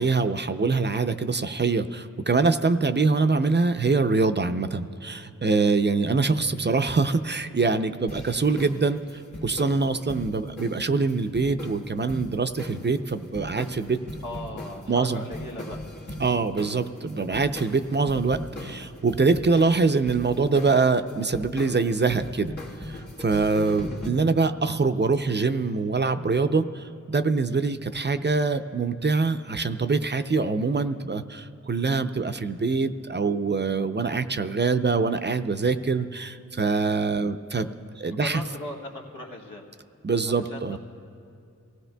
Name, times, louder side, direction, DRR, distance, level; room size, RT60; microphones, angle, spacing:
voice 1, 0.0-14.0 14.9-15.2 16.2-22.5 22.8-37.7 38.0-38.4 40.0-40.8, right 4 dB, 35° right, 9 dB, 0.5 m, -24 dB
live groove big room drums, 8.1-24.1, left 1 dB, 70° left, 1.6 m, -40 dB
voice 2, 14.2-15.8 38.2-39.7 40.2-40.8, left 1 dB, 90° left, -2 dB, 1.6 m, -38 dB
24.5 x 16.0 x 2.2 m, 2.4 s
wide cardioid pair, 50°, 31 cm